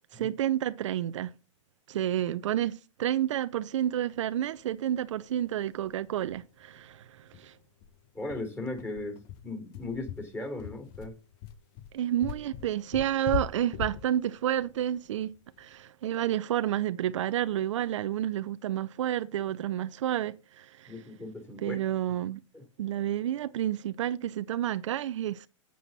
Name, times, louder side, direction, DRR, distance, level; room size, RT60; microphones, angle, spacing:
voice 1, 0.1-1.3 1.9-7.5 11.9-20.9 21.6-22.4 22.8-25.5, right 11 dB, 70° right, 0.6 m, -30 dB
sound 1, 5.4-5.5 5.8-5.9 6.2-6.4 6.8-6.9 7.3-15.8, left 8 dB, 45° left, 1.1 m, -39 dB
voice 2, 8.1-11.1 20.9-21.8 22.5-22.6, left 2 dB, 15° left, 3.3 m, -37 dB
8.5 x 7.6 x 4.0 m
hypercardioid pair, 120°, 17 cm